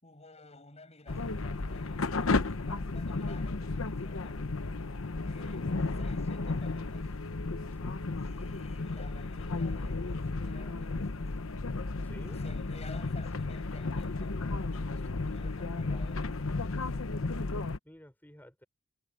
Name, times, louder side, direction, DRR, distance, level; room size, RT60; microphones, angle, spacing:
voice 1, 0.0-4.6 5.2-7.1 8.1-11.4 12.2-16.9, left 2 dB, 30° left, 6.3 m, -53 dB
sound 1, 1.1-17.8, left 3 dB, 80° left, 0.9 m, -33 dB
voice 2, 7.7-8.1 12.0-12.4 17.1-18.6, equal, 10° left, 4.9 m, -54 dB
head